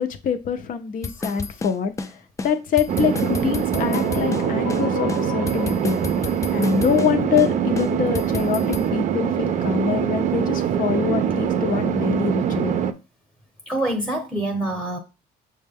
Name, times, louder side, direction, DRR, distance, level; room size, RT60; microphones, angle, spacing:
voice 1, 0.0-1.9 2.4-6.0 6.5-8.6 8.9-12.8, left 7 dB, 55° left, 8 dB, 0.6 m, -24 dB
sound 1, 1.0-2.1 2.4-2.5 2.8-4.4 4.7-4.8 5.1-7.1 7.4-7.5 7.8-8.9, left 4 dB, 20° left, 0.3 m, -31 dB
sound 2, 2.9-12.9, right 8 dB, 45° right, 0.5 m, -23 dB
sound 3, 3.7-6.6, left 7 dB, 85° left, 1.0 m, -33 dB
voice 2, 13.7-15.0, right 1 dB, ahead, 2 dB, 0.8 m, -27 dB
6.3 x 2.2 x 3.5 m, 0.29 s
cardioid pair, 110°, 17 cm